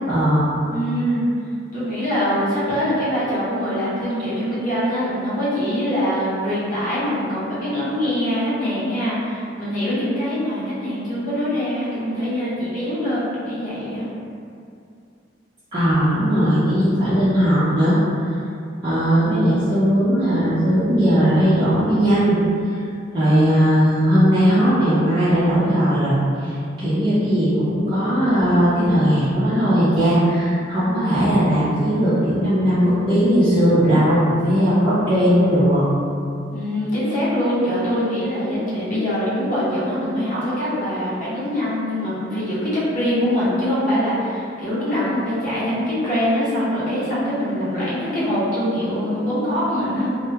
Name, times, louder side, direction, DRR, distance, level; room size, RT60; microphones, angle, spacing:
voice 1, 0.1-0.5 15.7-18.0 18.8-22.4 23.1-26.1 26.4-35.8, equal, 25° right, -15 dB, 0.5 m, -18 dB
voice 2, 0.7-1.2 1.7-14.1 36.5-50.1, equal, 45° left, -10 dB, 0.7 m, -23 dB
2.2 x 2.0 x 2.7 m, 2.4 s
head